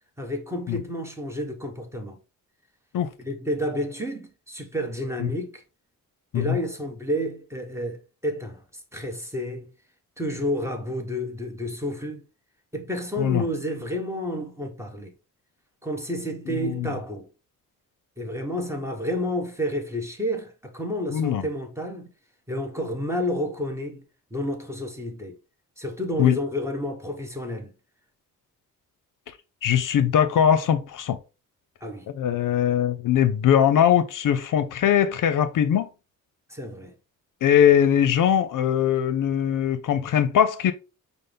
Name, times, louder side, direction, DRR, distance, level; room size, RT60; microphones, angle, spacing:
voice 1, 0.2-2.2 3.2-5.6 6.3-8.6 8.9-9.7 10.2-12.2 12.7-15.1 15.8-17.3 18.2-22.1 22.5-24.0 24.3-25.4 25.8-27.7 31.8-32.1 36.5-36.9, equal, 10° right, 0.8 m, -30 dB
voice 2, 21.1-21.5 26.2-26.4 29.6-31.2 32.1-35.9 37.4-40.7, left 9 dB, 65° left, 0.5 m, -21 dB
5.5 x 2.0 x 3.3 m
cardioid pair, 110°, 34 cm